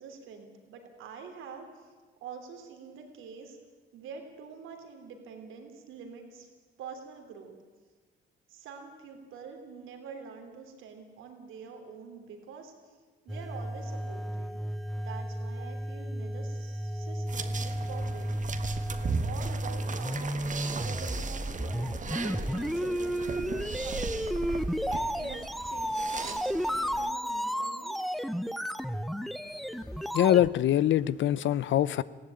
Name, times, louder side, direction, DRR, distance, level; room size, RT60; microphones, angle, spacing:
voice 1, 0.0-1.9 2.2-3.6 3.9-6.5 6.8-7.5 8.5-13.0 13.2-14.6 15.0-18.3 19.0-28.0, right 6 dB, 90° right, 4 dB, 3.4 m, -46 dB
sound 1, 13.3-30.5, equal, ahead, 0.8 m, -33 dB
sound 2, 17.3-27.1, right 4 dB, 40° right, 1.6 m, -37 dB
voice 2, 30.1-32.0, left 11 dB, 70° left, 18 dB, 0.7 m, -24 dB
20.0 x 15.5 x 8.9 m, 1.4 s
cardioid pair, 90°, 20 cm